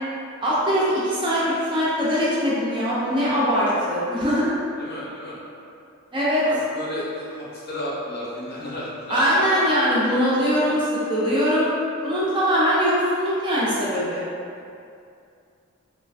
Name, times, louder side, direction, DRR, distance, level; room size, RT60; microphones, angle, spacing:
voice 1, 0.4-4.5 6.1-6.4 9.1-11.7 12.0-14.2, equal, 25° right, -8 dB, 0.5 m, -21 dB
voice 2, 4.8-5.4 6.4-9.4, left 1 dB, 50° left, -7 dB, 0.7 m, -33 dB
3.1 x 2.4 x 2.4 m, 2.5 s
head